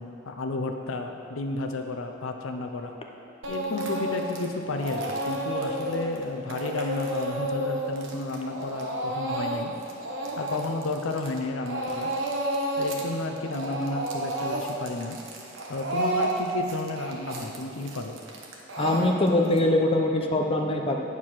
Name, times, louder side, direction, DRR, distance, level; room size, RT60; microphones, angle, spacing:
voice 1, 0.0-2.9 3.5-9.7 10.4-12.1 12.8-15.2 15.7-18.2, left 2 dB, 85° left, 4 dB, 0.6 m, -32 dB
Speech / Crying sobbing, 3.4-4.5 4.8-11.4 11.7-13.1 13.4-19.6, right 1 dB, 70° right, 1.0 m, -31 dB
voice 2, 18.8-21.0, left 1 dB, 30° left, 2 dB, 0.6 m, -23 dB
9.4 x 4.8 x 5.7 m, 2.7 s
head